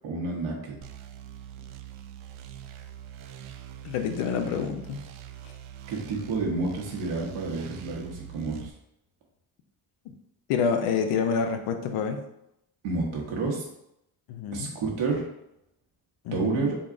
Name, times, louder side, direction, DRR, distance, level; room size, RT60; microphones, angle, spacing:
voice 1, 0.0-0.8 5.9-8.7 12.8-13.7 14.5-15.3 16.3-16.8, right 3 dB, 90° right, -2 dB, 1.1 m, -29 dB
sound 1, 0.8-8.7, right 10 dB, 75° right, 0.5 m, -44 dB
voice 2, 3.8-5.0 10.1-10.2 10.5-12.2 14.3-14.7 16.2-16.7, left 6 dB, 85° left, 6 dB, 0.7 m, -28 dB
3.9 x 3.6 x 2.5 m, 0.80 s
supercardioid pair, 60°, 50 cm